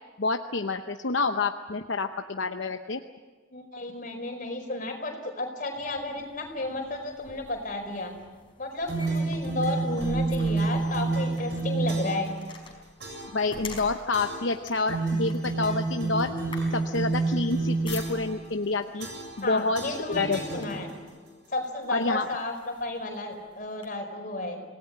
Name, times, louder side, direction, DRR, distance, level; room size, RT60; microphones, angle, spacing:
voice 1, 0.2-3.0 13.3-16.3 16.7-19.1 19.4-19.8 20.1-20.4 21.9-22.3, left 3 dB, 70° left, 6 dB, 0.8 m, -28 dB
voice 2, 3.5-8.1 8.6-12.3 19.4-20.9 21.5-24.6, left 2 dB, 40° left, 3 dB, 4.9 m, -33 dB
sound 1, 5.7-18.6 19.4-19.6 20.0-21.0 21.7-21.8 22.2-23.9, left 3 dB, 25° left, 4.6 m, -46 dB
sound 2, 8.9-12.3 13.0-13.4 14.1-14.5 14.9-18.3 19.0-19.4 19.7-21.1, right 3 dB, 55° right, 7.4 m, -29 dB
27.0 x 18.0 x 8.9 m, 1.4 s
head